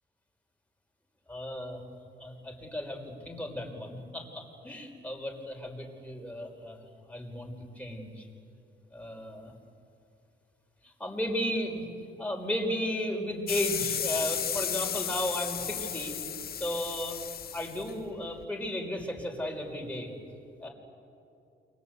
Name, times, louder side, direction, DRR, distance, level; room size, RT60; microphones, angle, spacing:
voice 1, 1.3-1.8 2.2-6.8 7.1-8.3 8.9-9.5 10.8-11.9 12.2-16.1 16.5-17.2 17.5-20.1 20.6-20.7, left 1 dB, 5° left, 1 dB, 5.5 m, -34 dB
sound 1, 13.5-18.4, left 8 dB, 50° left, 1.0 m, -34 dB
29.0 x 24.0 x 8.3 m, 2.6 s
cardioid pair, 90°, 20 cm